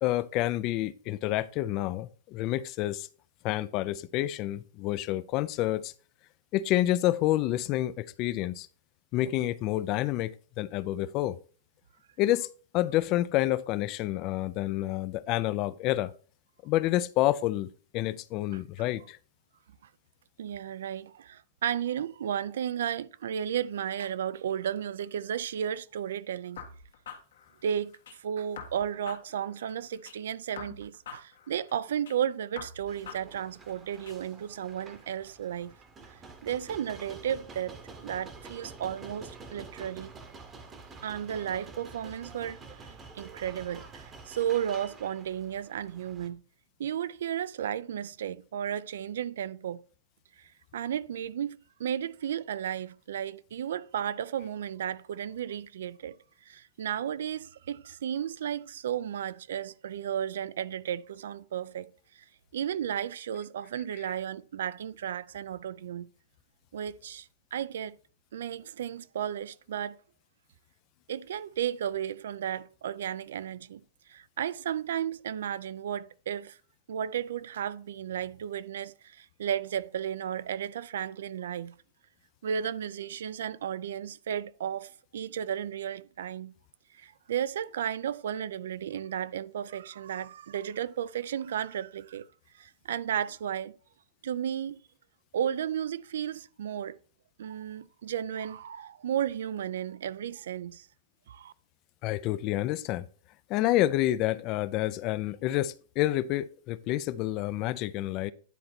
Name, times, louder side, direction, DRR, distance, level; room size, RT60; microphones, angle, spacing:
voice 1, 0.0-3.1 3.4-5.9 6.5-8.7 9.1-11.4 12.2-12.5 12.7-16.1 16.6-19.2 102.0-103.1 103.5-108.3, left 15 dB, 30° left, 0.3 m, -28 dB
voice 2, 20.4-26.6 27.6-35.7 36.4-37.8 38.0-40.1 41.0-42.6 43.1-46.4 46.8-49.8 50.4-56.1 56.5-62.2 62.5-66.1 66.7-68.0 68.3-70.0 71.1-73.8 74.1-76.6 76.9-81.7 82.4-86.5 86.9-92.3 92.5-93.8 94.2-94.8 95.3-97.0 97.4-100.9 101.3-101.5, right 9 dB, 75° right, 0.4 m, -34 dB
sound 1, 26.6-28.2 28.6-30.2 30.6-32.2 32.6-34.2, left 7 dB, 80° left, 1.5 m, -46 dB
sound 2, 32.9-46.3, right 4 dB, 15° right, 0.9 m, -48 dB
10.0 x 4.0 x 4.3 m
supercardioid pair, 165°, 0 cm